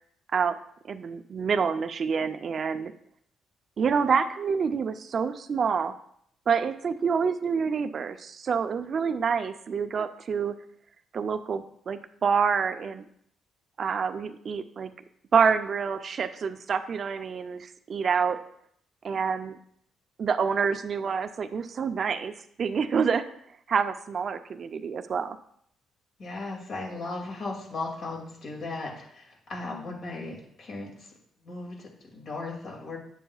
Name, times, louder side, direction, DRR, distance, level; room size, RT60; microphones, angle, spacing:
voice 1, 0.9-2.9 3.8-5.9 6.5-10.6 11.1-13.0 13.8-14.9 15.3-18.4 19.0-19.6 20.2-22.3 22.6-23.2 23.7-25.4, right 6 dB, 50° right, 8 dB, 0.5 m, -27 dB
voice 2, 26.2-31.1 31.4-33.0, left 3 dB, 55° left, -1 dB, 2.3 m, -37 dB
9.9 x 6.9 x 2.4 m, 0.67 s
cardioid pair, 90°, 0 cm